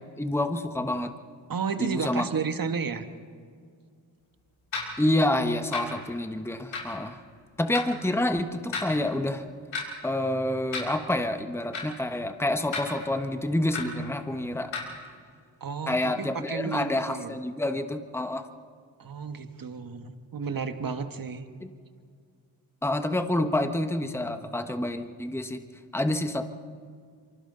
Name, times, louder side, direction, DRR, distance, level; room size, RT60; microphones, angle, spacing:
voice 1, 0.2-1.1 1.8-2.2 5.0-7.2 7.6-9.4 10.0-14.7 15.9-18.4 21.6-21.7 22.8-25.6 25.9-26.4, left 1 dB, 5° left, 7 dB, 1.4 m, -28 dB
voice 2, 1.5-3.1 15.6-17.4 19.0-21.4, right 5 dB, 45° right, 8 dB, 1.7 m, -32 dB
sound 1, 4.7-4.9 5.7-5.8 6.7-6.9 7.7-7.8 8.7-8.9 9.7-9.8 10.7-10.9 11.7-11.8 12.7-12.8 13.7-13.8 14.7-14.9, left 4 dB, 80° left, 4.9 m, -32 dB
27.5 x 24.0 x 4.0 m, 2.1 s
supercardioid pair, 50°, 46 cm